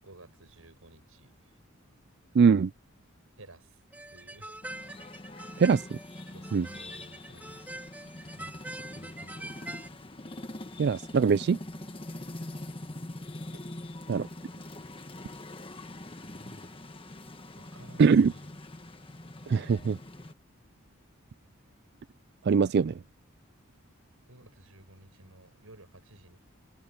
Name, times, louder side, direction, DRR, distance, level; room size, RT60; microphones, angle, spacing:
voice 1, 0.0-1.6 3.4-3.8 4.1-4.5 6.3-7.9 8.4-9.8 14.1-14.3 16.2-16.9 17.5-18.5 24.3-26.4, right 1 dB, 90° right, 5.9 m, -54 dB
voice 2, 2.3-2.7 5.6-6.0 6.5-6.6 10.8-11.6 14.1-14.3 18.0-18.3 19.5-20.0 22.5-22.9, right 5 dB, 50° right, 0.3 m, -22 dB
sound 1, 3.9-9.9, right 1 dB, 10° right, 2.8 m, -44 dB
sound 2, 4.6-20.3, left 1 dB, 25° left, 1.4 m, -43 dB
open air
head